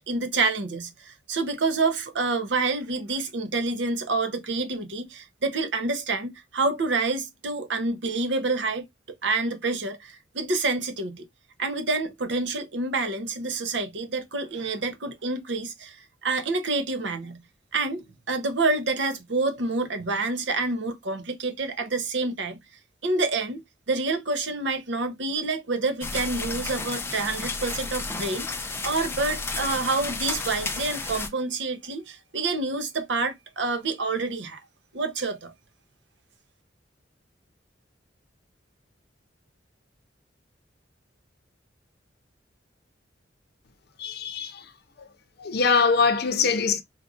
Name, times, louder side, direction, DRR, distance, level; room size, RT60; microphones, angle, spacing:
voice 1, 0.1-8.8 9.2-11.3 11.6-16.0 16.2-17.4 17.7-22.6 23.0-34.6 34.9-35.5, right 3 dB, 75° right, 0.8 m, -28 dB
sound 1, 26.0-31.3, left 3 dB, 15° left, 0.5 m, -32 dB
voice 2, 44.0-44.7 45.0-45.1 45.4-46.8, left 5 dB, 60° left, 0.6 m, -23 dB
4.5 x 2.5 x 2.4 m
head